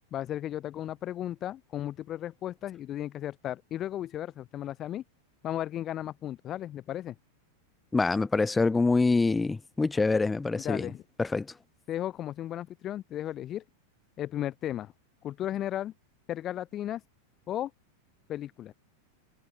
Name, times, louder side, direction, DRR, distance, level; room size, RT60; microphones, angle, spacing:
voice 1, 0.0-5.0 5.4-7.2 10.5-11.0 11.9-13.6 14.2-14.9 15.2-15.9 16.3-17.0 17.5-17.7 18.3-18.7, left 12 dB, 30° left, 7.1 m, -35 dB
voice 2, 7.9-10.9 11.2-11.5, left 3 dB, 10° left, 7.0 m, -25 dB
figure-of-eight pair, 90°, 0 cm